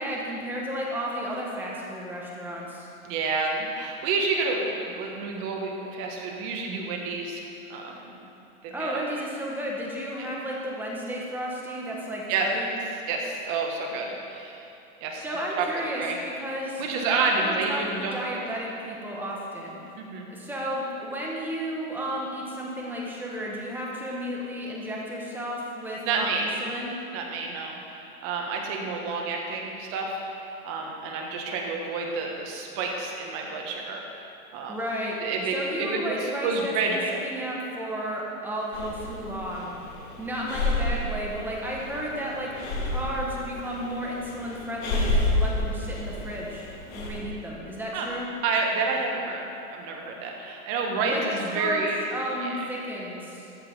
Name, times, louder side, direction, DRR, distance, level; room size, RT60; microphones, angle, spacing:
voice 1, 0.0-2.9 8.7-12.7 15.1-19.8 20.3-26.9 34.7-35.2 35.5-39.7 40.2-48.3 51.0-51.2 51.5-51.8 52.1-53.5, equal, 5° right, -4 dB, 1.2 m, -33 dB
voice 2, 3.0-8.2 8.6-9.1 10.2-10.3 12.3-12.5 13.1-14.6 15.0-15.2 15.6-16.2 16.8-18.2 20.0-20.3 26.0-26.5 27.1-34.3 34.5-34.7 35.2-37.2 47.9-48.1 48.4-52.0 52.4-52.5, right 4 dB, 35° right, 1 dB, 1.5 m, -29 dB
Breathing, 38.7-47.2, left 2 dB, 50° left, 2.1 m, -30 dB
14.0 x 5.6 x 5.5 m, 2.9 s
supercardioid pair, 150°, 42 cm